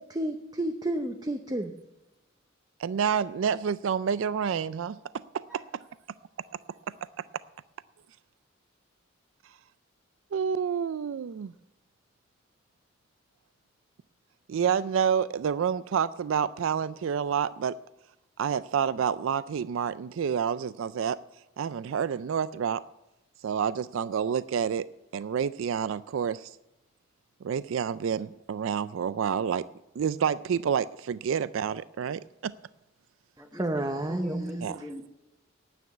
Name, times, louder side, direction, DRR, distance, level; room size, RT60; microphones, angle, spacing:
voice 1, 0.0-1.7 33.5-34.7, right 1 dB, 20° right, 0.7 m, -31 dB
voice 2, 2.8-5.0 5.3-5.6 10.3-11.5 14.5-17.8 18.4-21.2 21.6-22.8 23.4-24.9 25.1-26.5 27.4-29.7 30.0-32.5 34.6-34.8, right 7 dB, 75° right, 0.4 m, -28 dB
voice 3, 34.1-35.2, left 1 dB, ahead, 1.0 m, -41 dB
9.4 x 9.4 x 9.3 m
head